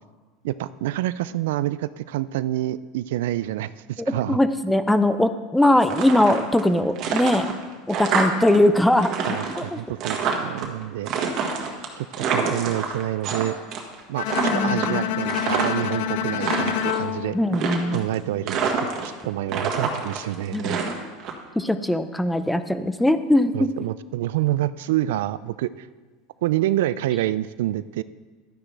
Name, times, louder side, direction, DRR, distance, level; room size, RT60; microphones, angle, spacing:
voice 1, 0.4-4.4 9.3-11.1 12.0-13.6 14.1-14.3 14.5-17.4 17.9-18.6 18.9-20.8 23.5-25.9 26.4-28.0, right 14 dB, 80° right, 16 dB, 0.3 m, -27 dB
voice 2, 4.0-7.5 7.9-9.8 14.4-15.1 17.3-18.1 20.5-20.9 21.5-23.7, left 1 dB, 5° left, 11 dB, 0.5 m, -21 dB
sound 1, 5.8-6.7 7.0-8.6 8.8-10.7 11.1-13.4 13.7-14.0 14.3-15.9 16.3-17.0 17.5-18.1 18.5-19.2 19.5-21.3, right 6 dB, 50° right, 1.6 m, -26 dB
Bowed string instrument, 14.2-18.3, left 11 dB, 70° left, 0.4 m, -28 dB
11.5 x 9.8 x 3.3 m, 1.3 s
supercardioid pair, 125°, 0 cm